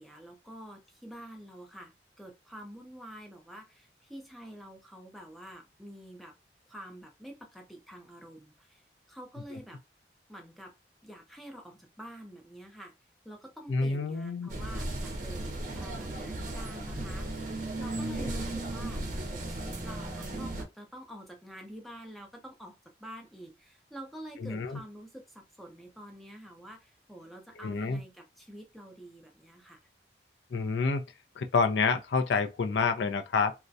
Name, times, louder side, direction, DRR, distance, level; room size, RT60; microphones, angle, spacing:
voice 1, 0.0-6.4 6.7-8.8 9.1-9.8 10.3-10.8 11.0-13.0 13.2-17.3 17.8-19.0 19.3-29.8, equal, ahead, 0.4 m, -47 dB
voice 2, 13.7-14.5 18.0-18.2 24.4-24.8 27.6-28.0 30.5-31.0 31.4-33.5, left 4 dB, 75° left, 0.4 m, -28 dB
sound 1, 14.5-20.6, right 2 dB, 45° right, 0.6 m, -36 dB
2.3 x 2.1 x 2.6 m
head